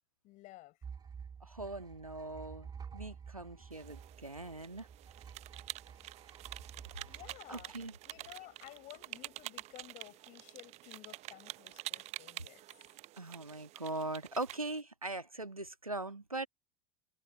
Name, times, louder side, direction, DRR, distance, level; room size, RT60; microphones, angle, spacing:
voice 1, 0.2-0.8 7.1-7.7 8.0-12.7, left 19 dB, 45° left, 6.1 m, -54 dB
sound 1, 0.8-8.3, right 6 dB, 20° right, 2.5 m, -51 dB
voice 2, 1.4-4.9 7.1-7.2 7.5-7.9 13.2-16.5, right 2 dB, 90° right, 1.7 m, -41 dB
sound 2, 3.7-14.8, right 17 dB, 40° right, 0.8 m, -48 dB
figure-of-eight pair, 75°, 18 cm